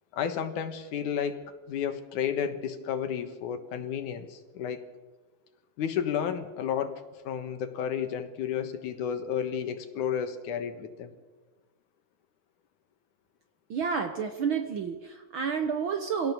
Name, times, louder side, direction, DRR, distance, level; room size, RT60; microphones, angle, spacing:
voice 1, 0.1-4.8 5.8-11.1, left 8 dB, 90° left, 8 dB, 3.0 m, -32 dB
voice 2, 13.7-16.3, right 6 dB, 60° right, 7 dB, 1.4 m, -30 dB
25.0 x 17.0 x 6.9 m, 1.2 s
omnidirectional pair, 3.4 m